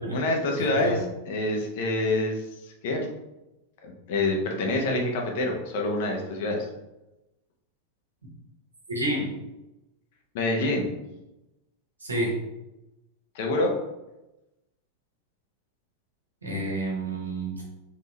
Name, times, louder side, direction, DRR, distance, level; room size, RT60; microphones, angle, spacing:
voice 1, 0.1-3.1 3.8-6.7 10.3-10.9 13.3-13.7, left 2 dB, 50° left, 2 dB, 1.0 m, -27 dB
voice 2, 8.9-9.3 12.0-12.4 16.4-17.6, right 1 dB, 80° right, -2 dB, 1.4 m, -29 dB
4.3 x 3.9 x 3.2 m, 0.96 s
figure-of-eight pair, 90°, 0 cm